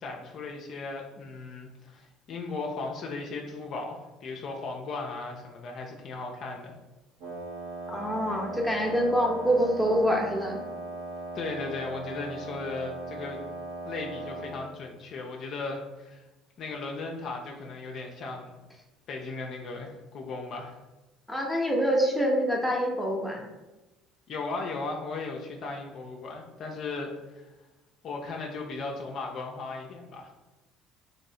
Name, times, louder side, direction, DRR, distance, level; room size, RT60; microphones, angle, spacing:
voice 1, 0.0-6.7 11.3-13.4 13.9-16.2 16.6-18.5 19.1-20.8 24.3-27.5 28.0-30.3, left 3 dB, 55° left, 1 dB, 0.4 m, -36 dB
Wind instrument woodwind instrument, 7.2-14.6, right 2 dB, 75° right, 0.9 m, -38 dB
voice 2, 7.9-10.6 21.3-23.5, equal, ahead, -1 dB, 0.7 m, -26 dB
3.0 x 2.9 x 2.7 m, 1.1 s
hypercardioid pair, 60°, 0 cm